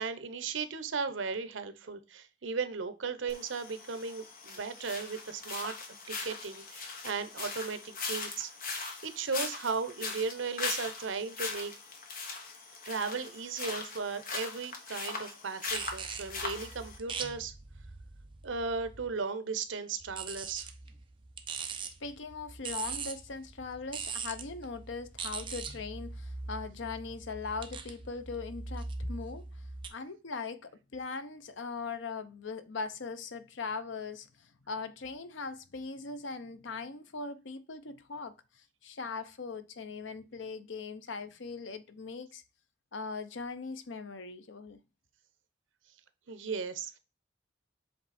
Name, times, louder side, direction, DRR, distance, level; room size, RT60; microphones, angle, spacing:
voice 1, 0.0-5.8 6.1-8.8 9.0-11.7 12.9-17.5 18.4-20.7 46.3-47.0, right 5 dB, 85° right, 0.8 m, -36 dB
sound 1, 3.3-17.0, left 4 dB, 50° left, 1.4 m, -40 dB
sound 2, 15.7-19.2 20.0-29.9, right 4 dB, 25° right, 0.8 m, -42 dB
voice 2, 22.0-29.6 29.9-42.4 42.9-44.8, left 4 dB, 75° left, 0.7 m, -40 dB
7.8 x 3.3 x 4.1 m
head